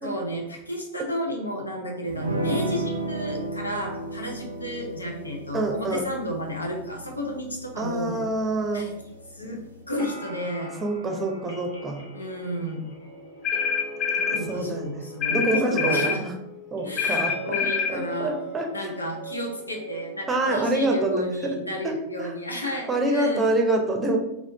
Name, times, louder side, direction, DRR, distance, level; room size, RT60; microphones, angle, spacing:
voice 1, 0.0-8.2 8.7-8.9 9.3-9.6 9.9-10.7 12.1-12.8 14.2-15.4 15.7-16.2 16.8-18.3 18.7-23.4, equal, 80° left, 1 dB, 0.7 m, -32 dB
sound 1, 2.1-9.8, right 1 dB, 80° right, 0.5 m, -34 dB
voice 2, 5.5-6.0 7.8-8.8 10.8-12.0 14.5-16.3 16.7-18.9 20.3-21.2 21.8-22.3 22.6-24.2, right 2 dB, 20° right, 2 dB, 0.6 m, -26 dB
sound 2, 7.8-20.3, right 2 dB, 65° left, 1.4 m, -42 dB
sound 3, 13.4-14.4 15.2-16.2 17.0-18.0, left 6 dB, 30° left, 0.3 m, -25 dB
3.7 x 2.4 x 3.4 m, 0.84 s
figure-of-eight pair, 90°, 0 cm